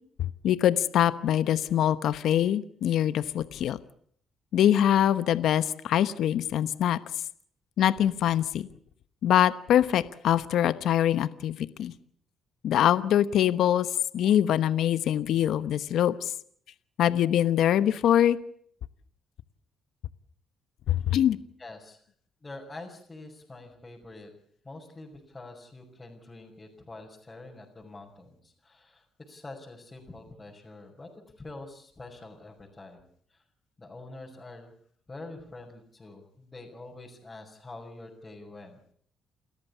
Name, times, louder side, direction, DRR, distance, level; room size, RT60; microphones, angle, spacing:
voice 1, 0.4-3.8 4.5-7.0 7.8-8.7 9.2-11.9 12.6-13.9 14.1-16.3 17.0-18.4 20.9-21.4, left 11 dB, 75° left, 14 dB, 1.0 m, -24 dB
voice 2, 21.6-22.0 22.4-24.3 24.6-33.4 33.8-34.7 35.1-38.8, left 2 dB, 20° left, -3 dB, 5.7 m, -46 dB
29.5 x 14.0 x 8.4 m, 0.63 s
cardioid pair, 90°, 0 cm